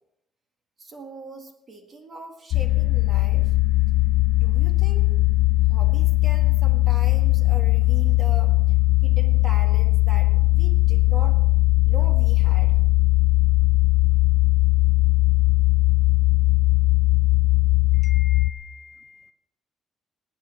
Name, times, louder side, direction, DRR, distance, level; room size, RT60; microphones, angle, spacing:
voice 1, 0.8-3.5 4.4-5.1 5.7-8.6 9.0-11.4 11.9-12.8, right 2 dB, 30° right, 4 dB, 1.9 m, -41 dB
sound 1, 2.5-18.5, left 20 dB, 75° left, 0.3 m, -19 dB
voice 2, 17.9-19.3, left 4 dB, 25° left, 8 dB, 0.6 m, -44 dB
19.5 x 8.5 x 4.4 m, 0.84 s
cardioid pair, 145°, 0 cm